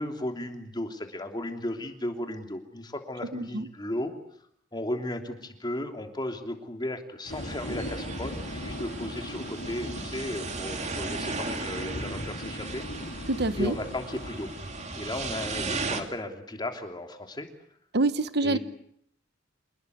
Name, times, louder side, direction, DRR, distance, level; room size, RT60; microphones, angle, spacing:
voice 1, 0.0-4.1 4.7-12.9 13.6-14.5 15.0-17.5 18.4-18.6, left 1 dB, 25° left, 5 dB, 3.2 m, -35 dB
voice 2, 3.3-3.7 13.3-13.8 17.9-18.6, right 2 dB, 60° right, 13 dB, 1.1 m, -26 dB
sound 1, 7.3-16.1, left 1 dB, 75° left, 5.2 m, -39 dB
sound 2, 7.3-16.0, right 4 dB, 40° right, 2.7 m, -37 dB
27.0 x 20.5 x 8.4 m, 0.69 s
head